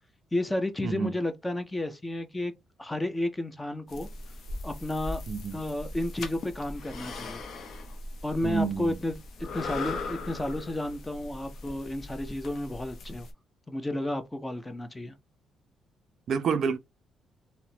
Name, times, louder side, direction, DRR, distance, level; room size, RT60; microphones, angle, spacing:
voice 1, 0.3-2.5 2.8-4.1 4.6-5.2 5.5-7.4 8.2-13.3 13.7-15.1, left 1 dB, 10° left, 0.4 m, -32 dB
sound 1, 3.9-13.3, left 3 dB, 55° left, 0.6 m, -39 dB
voice 2, 5.3-5.6 8.4-9.0 16.3-16.8, right 5 dB, 50° right, 0.3 m, -28 dB
2.8 x 2.1 x 2.6 m
cardioid pair, 150°, 0 cm